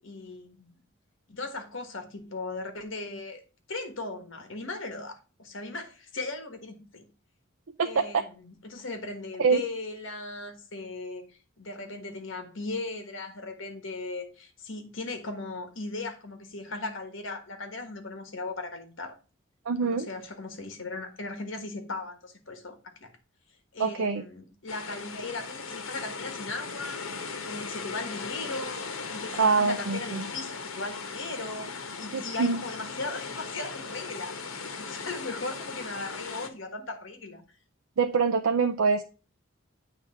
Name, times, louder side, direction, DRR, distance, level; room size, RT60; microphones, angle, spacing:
voice 1, 0.0-0.8 1.3-3.4 3.7-7.1 7.8-19.1 19.8-23.1 23.7-31.7 32.0-34.3 34.8-37.4, left 3 dB, 65° left, 1.5 m, -38 dB
voice 2, 7.8-8.2 9.4-9.6 19.7-20.1 23.8-24.2 29.3-30.3 32.1-32.6 38.0-39.0, right 5 dB, 85° right, 0.5 m, -25 dB
sound 1, 24.7-36.5, left 4 dB, 85° left, 1.1 m, -38 dB
8.4 x 3.4 x 5.6 m
head